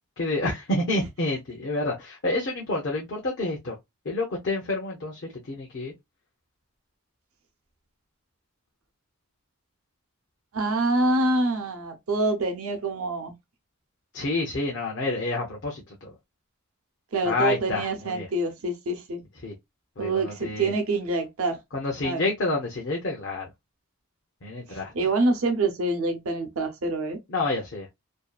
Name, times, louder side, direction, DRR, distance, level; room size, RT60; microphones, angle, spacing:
voice 1, 0.2-3.8 4.1-5.2 5.5-5.9 14.1-16.1 17.2-18.3 19.4-19.5 20.0-20.7 21.7-23.5 24.4-24.9 27.3-27.9, left 2 dB, 55° left, 0.6 m, -28 dB
voice 2, 10.5-13.3 17.1-19.2 20.0-21.6 22.0-22.3 24.7-27.2, right 2 dB, 75° right, 0.7 m, -26 dB
2.6 x 2.3 x 2.2 m
head